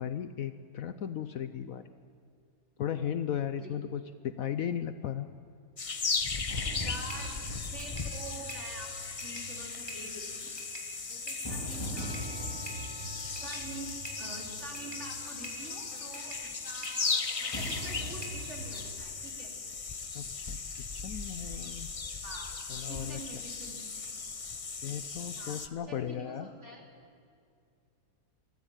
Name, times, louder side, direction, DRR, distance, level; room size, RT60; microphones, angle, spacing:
voice 1, 0.0-1.8 2.8-5.3 20.1-21.9 22.7-23.2 24.8-26.5, left 9 dB, 65° left, 11 dB, 1.0 m, -36 dB
sound 1, 5.8-25.7, left 4 dB, 35° left, 0.6 m, -37 dB
sound 2, 6.5-18.9, equal, 15° left, 3.3 m, -42 dB
voice 2, 6.8-8.9 9.2-10.5 11.1-12.1 13.4-19.5 22.2-22.5 22.9-23.9 25.4-25.6 25.9-26.8, right 2 dB, 45° right, -1 dB, 3.7 m, -46 dB
23.0 x 14.5 x 9.0 m, 2.4 s
omnidirectional pair, 1.7 m